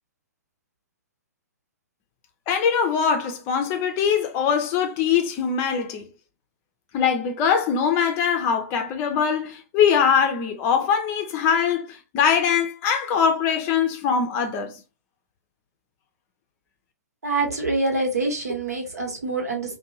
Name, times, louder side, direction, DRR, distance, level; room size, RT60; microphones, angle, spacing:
voice 1, 2.5-6.1 6.9-14.7, left 7 dB, 30° left, 0.5 m, -22 dB
voice 2, 17.2-19.8, right 2 dB, 70° right, 1.2 m, -25 dB
2.6 x 2.2 x 2.8 m
figure-of-eight pair, 115°, 9 cm